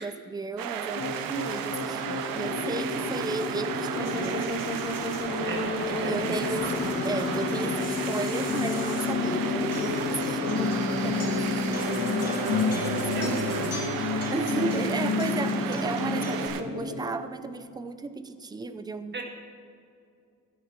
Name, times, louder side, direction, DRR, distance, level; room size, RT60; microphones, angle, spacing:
voice 1, 0.0-4.6 5.9-13.4 14.3-19.2, right 3 dB, 10° right, 10 dB, 0.5 m, -34 dB
sound 1, 0.6-16.6, right 9 dB, 90° right, 0.9 m, -35 dB
sound 2, 0.9-17.0, left 3 dB, 65° left, 3.3 m, -32 dB
voice 2, 5.4-5.7 6.0-6.9 13.1-13.7 19.1-19.2, right 3 dB, 30° right, 2 dB, 1.9 m, -36 dB
Acoustic guitar, 8.5-16.5, left 4 dB, 45° left, 2.5 m, -30 dB
12.5 x 10.5 x 5.9 m, 2.4 s
cardioid pair, 155°, 33 cm